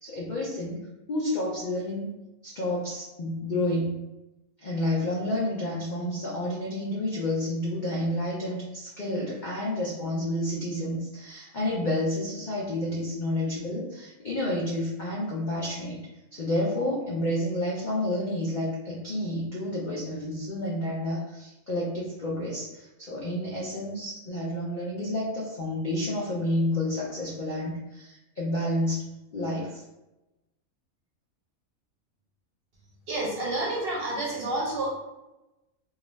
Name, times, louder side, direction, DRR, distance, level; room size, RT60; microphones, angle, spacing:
voice 1, 0.0-0.8 1.1-2.1 2.4-4.0 4.6-16.0 16.3-29.8, left 1 dB, 65° left, -5 dB, 0.4 m, -30 dB
voice 2, 33.1-34.9, right 2 dB, 55° right, -4 dB, 0.7 m, -29 dB
2.4 x 2.3 x 3.0 m, 0.98 s
omnidirectional pair, 1.4 m